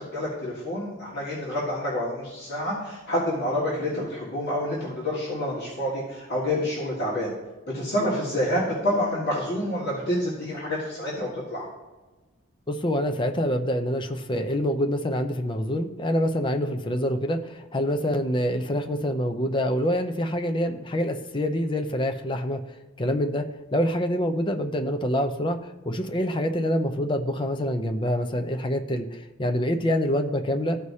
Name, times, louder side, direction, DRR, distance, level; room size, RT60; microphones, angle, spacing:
voice 1, 0.0-7.3 7.7-11.6, left 1 dB, 50° left, -7 dB, 1.8 m, -28 dB
voice 2, 12.7-22.6 23.0-30.8, equal, 25° left, 6 dB, 0.5 m, -26 dB
14.0 x 4.8 x 2.8 m, 1.2 s
head